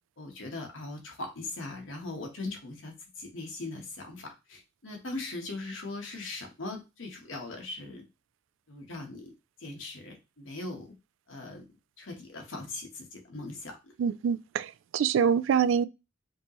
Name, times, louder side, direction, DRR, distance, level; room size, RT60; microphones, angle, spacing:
voice 1, 0.2-8.0 8.7-9.3 9.6-10.9 11.3-11.6 12.0-13.9, left 2 dB, 75° left, 1.3 m, -40 dB
voice 2, 14.0-15.9, right 7 dB, 75° right, 0.3 m, -25 dB
5.2 x 3.0 x 3.0 m
head